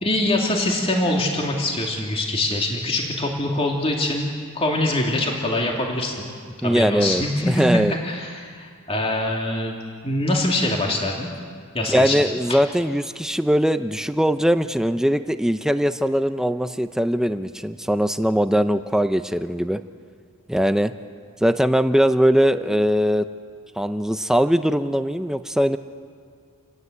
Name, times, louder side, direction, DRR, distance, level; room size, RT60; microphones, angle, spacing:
voice 1, 0.0-6.3 6.6-9.8 10.0-11.3 11.7-12.2 12.5-12.6, left 1 dB, 25° left, 0 dB, 2.8 m, -24 dB
voice 2, 6.6-7.9 11.9-19.8 20.5-20.9 21.4-23.2 23.8-25.8, equal, ahead, 9 dB, 0.6 m, -21 dB
29.0 x 19.5 x 8.1 m, 2.1 s
head